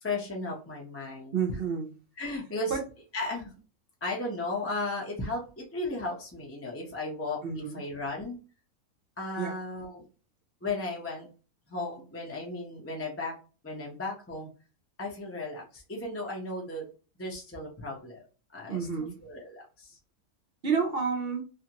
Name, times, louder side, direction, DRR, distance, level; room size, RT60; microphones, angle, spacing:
voice 1, 0.0-1.4 2.2-2.8 3.1-3.5 4.0-8.4 9.2-10.0 10.6-11.3 11.7-13.4 13.6-14.5 15.0-16.9 17.2-18.2 18.5-20.0, left 2 dB, 15° left, -2 dB, 0.5 m, -35 dB
voice 2, 1.3-1.9 2.7-2.8 7.4-7.8 9.4-9.5 18.7-19.2 20.6-21.4, right 6 dB, 55° right, 3 dB, 0.7 m, -29 dB
2.8 x 2.5 x 2.8 m, 0.34 s
omnidirectional pair, 1.5 m